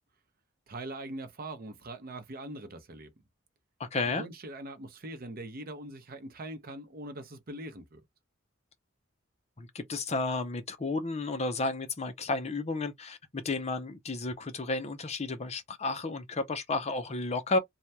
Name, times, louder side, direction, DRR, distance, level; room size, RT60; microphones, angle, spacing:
voice 1, 0.7-3.1 4.2-8.0, right 1 dB, 45° right, 0.7 m, -42 dB
voice 2, 3.8-4.2 9.6-17.6, left 3 dB, 30° left, 0.6 m, -32 dB
3.3 x 2.2 x 2.7 m
head